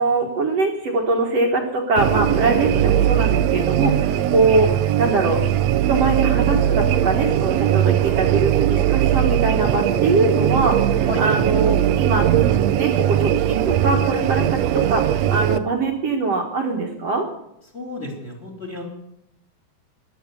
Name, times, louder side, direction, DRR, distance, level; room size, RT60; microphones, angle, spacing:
voice 1, 0.0-5.4 5.9-12.3 12.8-17.3, right 3 dB, 55° right, 1 dB, 2.3 m, -22 dB
sound 1, 2.0-15.6, right 11 dB, 70° right, 1.7 m, -19 dB
voice 2, 17.7-18.8, left 2 dB, 20° left, 1 dB, 3.4 m, -32 dB
12.5 x 11.0 x 8.4 m, 0.81 s
omnidirectional pair, 3.6 m